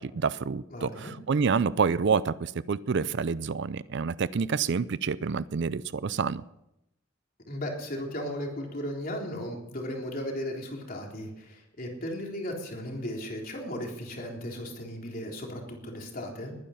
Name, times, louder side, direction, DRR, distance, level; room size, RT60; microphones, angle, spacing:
voice 1, 0.0-6.4, right 5 dB, 60° right, 18 dB, 0.5 m, -28 dB
voice 2, 0.7-1.1 7.5-16.6, equal, 45° left, 0 dB, 3.5 m, -36 dB
21.0 x 10.0 x 5.7 m, 0.85 s
head